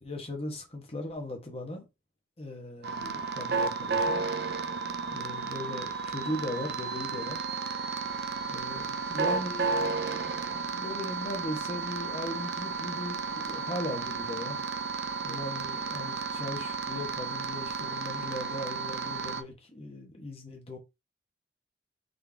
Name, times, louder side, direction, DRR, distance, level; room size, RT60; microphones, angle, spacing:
voice 1, 0.0-1.9 2.4-4.2 5.1-7.4 8.5-14.6 15.2-20.8, left 1 dB, 30° left, 1.2 m, -38 dB
sound 1, 2.8-19.4, right 4 dB, 55° right, 0.5 m, -33 dB
3.9 x 3.3 x 3.4 m
head